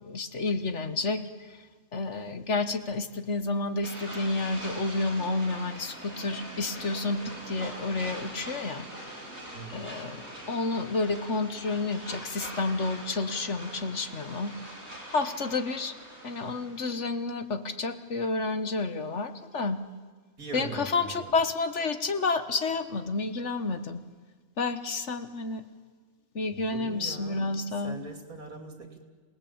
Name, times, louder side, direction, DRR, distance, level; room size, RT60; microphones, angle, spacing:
voice 1, 0.0-1.6 1.9-8.9 9.1-9.2 9.7-14.5 15.1-16.0 16.2-19.8 20.5-24.0 24.6-25.6 26.3-28.0, left 3 dB, 55° left, 9 dB, 1.6 m, -30 dB
sound 1, 3.8-16.9, right 1 dB, 45° right, 5.8 m, -43 dB
voice 2, 20.4-21.3 26.4-29.0, right 4 dB, 80° right, 4 dB, 3.5 m, -41 dB
27.5 x 18.5 x 8.8 m, 1.5 s
omnidirectional pair, 1.5 m